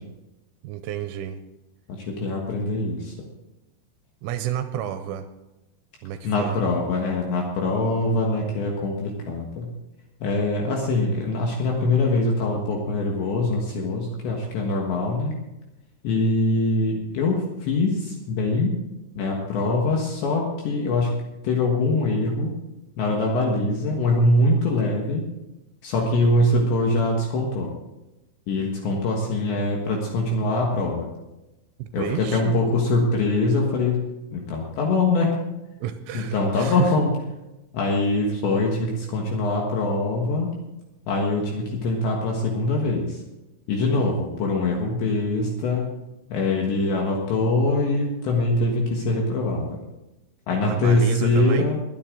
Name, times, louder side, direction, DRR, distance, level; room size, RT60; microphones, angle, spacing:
voice 1, 0.6-1.4 4.2-5.3 6.0-6.6 31.8-32.5 35.8-36.9 50.6-51.7, right 11 dB, 85° right, 9 dB, 3.0 m, -30 dB
voice 2, 1.9-3.1 6.2-9.7 10.2-15.4 16.0-18.7 19.2-21.1 21.4-22.5 23.0-25.2 25.8-27.7 28.5-31.1 31.9-34.0 34.3-35.3 36.1-37.1 37.7-40.5 41.1-43.2 43.7-45.9 46.3-49.8 50.5-51.8, left 2 dB, 65° left, 0 dB, 3.4 m, -23 dB
21.5 x 9.8 x 3.8 m, 1.0 s
omnidirectional pair, 6.0 m